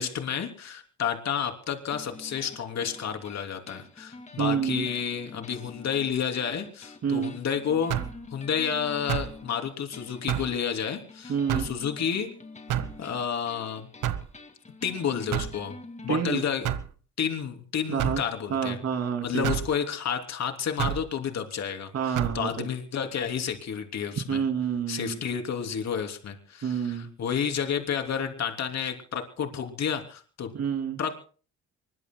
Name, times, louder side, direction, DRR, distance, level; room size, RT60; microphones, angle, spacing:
voice 1, 0.0-8.0 8.3-12.3 13.0-13.9 14.8-15.7 16.0-16.7 17.2-18.8 19.2-24.4 24.9-30.5 31.0-31.3, left 7 dB, 60° left, 4 dB, 3.2 m, -30 dB
sound 1, 1.9-16.2, left 3 dB, 25° left, 2.1 m, -46 dB
voice 2, 4.4-4.9 7.0-7.4 11.3-11.7 16.1-16.4 17.9-18.2 18.5-19.5 21.9-22.7 24.3-25.2 26.6-27.1 30.5-31.0, right 7 dB, 55° right, 4 dB, 2.9 m, -28 dB
sound 2, 7.9-8.2 9.1-9.4 10.3-10.6 11.5-11.8 12.7-13.0 14.0-14.3 15.3-15.6 16.6-16.9 18.0-18.2 19.4-19.7 20.8-21.1 22.1-22.4, right 11 dB, 85° right, 1.3 m, -28 dB
24.5 x 22.0 x 2.3 m, 0.40 s
cardioid pair, 90°, 30 cm